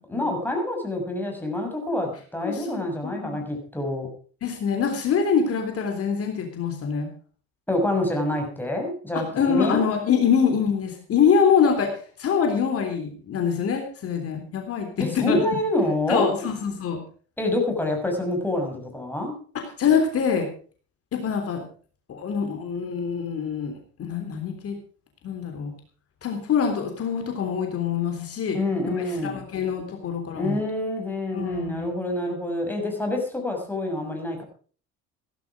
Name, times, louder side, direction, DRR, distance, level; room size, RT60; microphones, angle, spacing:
voice 1, 0.1-4.1 7.7-9.9 15.0-16.5 17.4-19.4 28.5-29.4 30.3-34.4, left 1 dB, 5° left, 2 dB, 6.5 m, -27 dB
voice 2, 2.4-3.5 4.4-7.1 9.1-11.9 12.2-15.4 16.1-17.0 19.5-20.5 21.1-21.6 22.1-24.8 25.2-25.7 26.2-28.6 29.0-30.6 31.3-31.9, left 6 dB, 55° left, 4 dB, 3.5 m, -25 dB
17.0 x 12.0 x 5.0 m, 0.42 s
cardioid pair, 105°, 29 cm